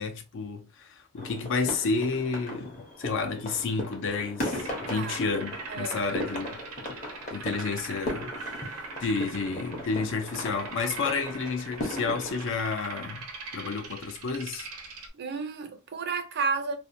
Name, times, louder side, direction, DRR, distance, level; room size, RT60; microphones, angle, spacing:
voice 1, 0.0-6.6 7.3-8.3 9.0-13.2 13.5-14.7, left 4 dB, 60° left, 0.5 m, -31 dB
sound 1, 1.2-12.5, left 1 dB, 35° left, 0.8 m, -37 dB
sound 2, 4.5-15.1, right 4 dB, 90° right, 0.7 m, -41 dB
voice 2, 4.8-5.2 5.7-6.0 15.1-16.8, right 4 dB, 50° right, 0.5 m, -32 dB
2.6 x 2.1 x 2.6 m
head